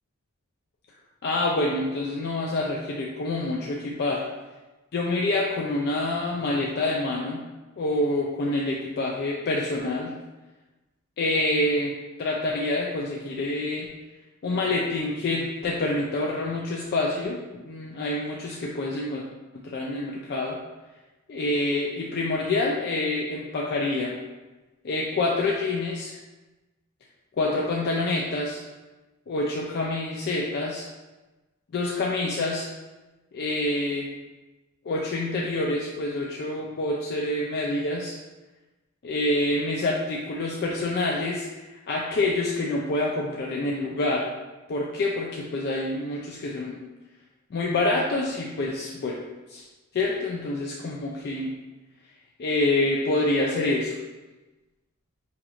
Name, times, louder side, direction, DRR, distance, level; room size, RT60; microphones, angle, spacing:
voice 1, 1.2-4.2 4.9-7.4 7.8-10.1 11.2-11.9 12.2-13.9 14.4-17.4 17.6-19.2 19.6-20.6 21.3-24.1 24.8-26.1 27.4-28.6 29.3-30.9 31.7-32.7 33.3-34.1 34.9-38.2 39.0-44.3 44.7-46.8 47.5-49.2 49.5-49.6 49.9-51.5 52.4-53.9, left 2 dB, 50° left, -2 dB, 0.4 m, -27 dB
5.0 x 2.9 x 2.4 m, 1.1 s
head